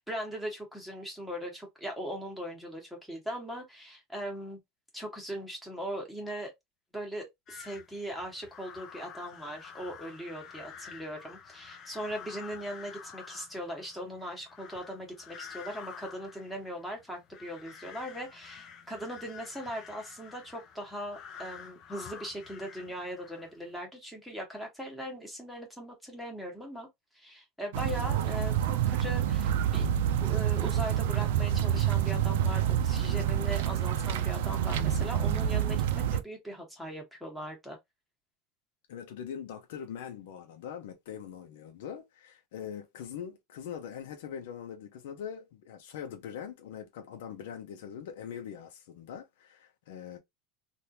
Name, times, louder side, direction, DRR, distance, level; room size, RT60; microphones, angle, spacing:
voice 1, 0.0-4.6 4.9-6.5 6.9-26.9 27.1-29.9 30.2-37.8, equal, ahead, 1.3 m, -39 dB
sound 1, 7.5-23.7, left 7 dB, 35° left, 0.7 m, -49 dB
sound 2, 27.7-36.2, right 10 dB, 85° right, 0.4 m, -28 dB
voice 2, 38.9-50.2, left 8 dB, 85° left, 0.7 m, -42 dB
3.4 x 2.5 x 2.8 m
supercardioid pair, 155°, 0 cm